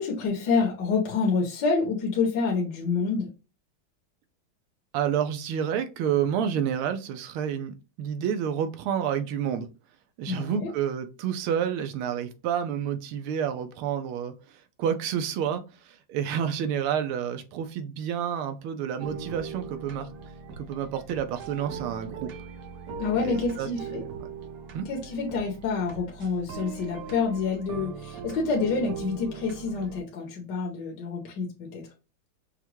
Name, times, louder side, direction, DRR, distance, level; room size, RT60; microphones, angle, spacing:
voice 1, 0.0-3.3 10.3-10.7 23.0-24.0 24.8-31.9, left 4 dB, 60° left, 0 dB, 1.4 m, -27 dB
voice 2, 4.9-9.7 10.2-14.3 14.8-20.1 20.6-22.3 23.1-24.3 24.7-24.9, right 8 dB, 90° right, 9 dB, 1.5 m, -29 dB
sound 1, 19.0-30.0, right 6 dB, 65° right, 1.2 m, -40 dB
5.8 x 2.2 x 3.0 m, 0.31 s
omnidirectional pair, 2.3 m